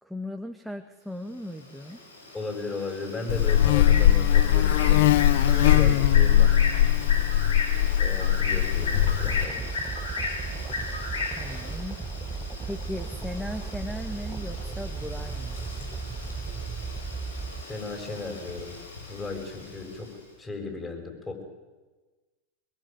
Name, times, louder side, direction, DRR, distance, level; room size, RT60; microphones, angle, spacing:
voice 1, 0.0-2.0 11.3-12.0 12.7-15.6, left 1 dB, ahead, 7 dB, 1.8 m, -37 dB
Bird, 1.4-20.1, left 3 dB, 90° left, 5.5 m, -36 dB
voice 2, 2.3-6.6 8.0-9.7 17.7-18.8 19.1-20.1 20.4-21.4, left 3 dB, 15° left, 3 dB, 7.7 m, -36 dB
Buzz, 3.3-9.5, left 12 dB, 70° left, 0.7 m, -20 dB
sound 1, 8.8-17.6, right 4 dB, 15° right, 1.4 m, -35 dB
23.0 x 23.0 x 9.4 m, 1.3 s
hypercardioid pair, 100°, 0 cm